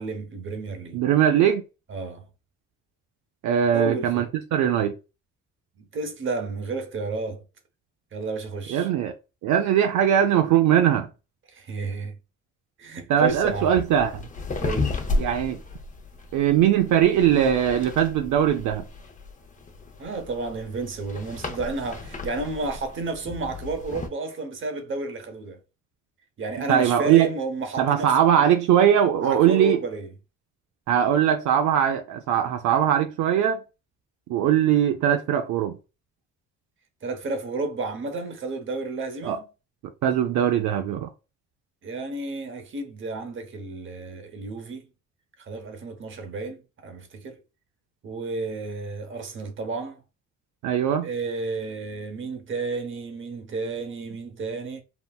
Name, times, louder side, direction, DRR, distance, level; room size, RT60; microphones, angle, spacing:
voice 1, 0.0-1.0 1.9-2.3 3.7-4.2 5.8-7.4 8.1-8.9 11.5-12.2 12.8-13.7 14.6-15.0 20.0-25.6 26.4-28.5 29.2-30.1 37.0-39.4 41.8-44.9 45.4-47.4 48.0-50.0 51.0-54.8, right 3 dB, 40° right, 0.8 m, -31 dB
voice 2, 0.9-1.6 3.4-4.9 8.7-9.1 9.4-11.1 13.1-14.2 15.2-15.6 16.3-18.8 26.7-27.3 27.8-29.8 30.9-33.6 34.3-35.8 39.2-39.4 40.0-41.1 50.6-51.1, right 10 dB, 75° right, 0.5 m, -20 dB
sound 1, 13.3-24.1, left 3 dB, 25° left, 0.6 m, -34 dB
3.7 x 2.1 x 2.2 m
cardioid pair, 90°, 30 cm